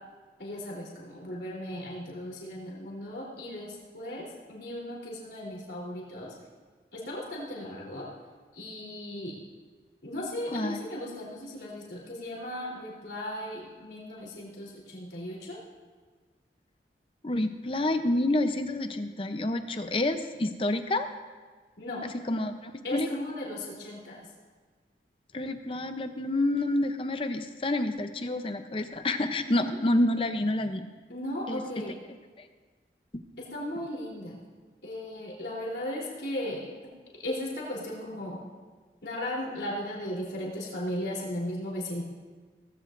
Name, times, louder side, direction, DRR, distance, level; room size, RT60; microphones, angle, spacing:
voice 1, 0.4-6.3 6.9-8.1 8.5-9.4 10.0-15.6 21.8-22.0 22.8-24.3 29.5-29.7 31.1-31.9 33.4-34.3 34.8-36.7 37.2-38.4 39.0-42.0, left 1 dB, 80° left, -4 dB, 3.5 m, -36 dB
voice 2, 17.2-21.1 22.0-23.1 25.3-30.8 31.5-31.8 32.4-32.5 33.1-33.2, left 1 dB, 30° left, 8 dB, 0.7 m, -28 dB
18.0 x 14.5 x 2.6 m, 1.5 s
head